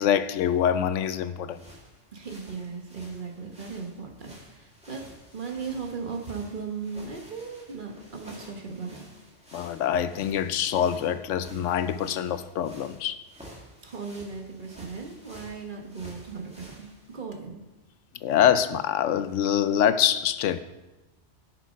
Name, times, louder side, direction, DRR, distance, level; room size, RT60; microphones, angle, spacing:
voice 1, 0.0-1.6 9.5-13.2 18.2-20.6, left 9 dB, 90° left, 0.9 m, -25 dB
sound 1, 1.5-17.2, equal, 5° right, 1.8 m, -51 dB
voice 2, 2.1-5.0 5.3-9.0 13.8-17.6, right 5 dB, 45° right, 1.3 m, -37 dB
10.0 x 6.3 x 5.1 m
omnidirectional pair, 1.2 m